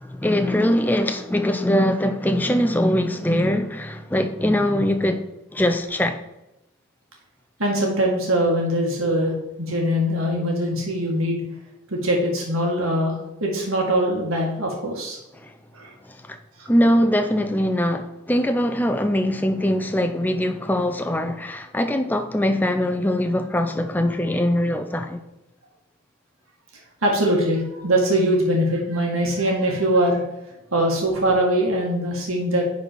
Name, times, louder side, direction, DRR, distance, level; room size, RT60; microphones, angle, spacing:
voice 1, 0.0-5.2 5.5-6.2 15.4-15.5 16.3-16.4 16.7-25.2, left 1 dB, 10° left, 0.5 m, -22 dB
voice 2, 7.6-11.4 11.9-15.2 15.7-15.9 16.6-16.7 27.0-30.2 30.7-32.6, right 1 dB, 85° right, 1.9 m, -22 dB
10.0 x 4.2 x 4.6 m
head